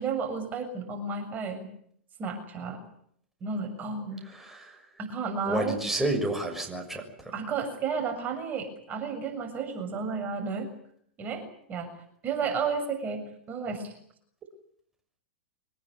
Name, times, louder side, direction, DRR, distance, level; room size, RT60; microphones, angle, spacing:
voice 1, 0.0-1.7 2.2-2.8 3.4-4.2 5.0-5.8 7.3-10.7 11.2-11.9 12.2-13.9, right 5 dB, 30° right, 6 dB, 6.8 m, -32 dB
voice 2, 4.3-4.8 5.5-7.3, right 1 dB, 5° right, 2 dB, 6.7 m, -30 dB
24.5 x 20.5 x 9.7 m, 0.65 s
hypercardioid pair, 110°, 6 cm